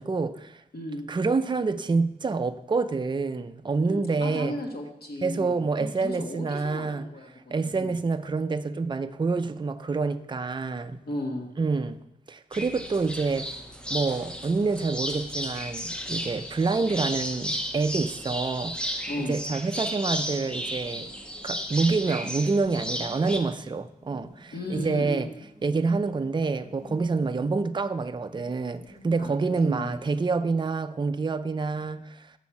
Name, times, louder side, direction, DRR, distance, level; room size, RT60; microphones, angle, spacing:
voice 1, 0.0-0.6 1.1-4.6 5.2-7.1 7.5-11.0 11.6-12.0 12.3-13.5 13.9-18.8 19.2-21.1 21.4-25.3 25.6-32.3, right 4 dB, 30° right, 0.4 m, -27 dB
voice 2, 0.7-1.1 3.8-7.9 11.1-11.5 19.1-19.4 24.5-25.2 29.2-30.0, left 1 dB, 70° left, 1.5 m, -35 dB
sound 1, 12.5-23.4, equal, 5° left, 0.8 m, -34 dB
sound 2, 20.3-30.2, left 1 dB, 45° left, 1.4 m, -51 dB
6.2 x 6.2 x 7.1 m
wide cardioid pair, 105°, 17 cm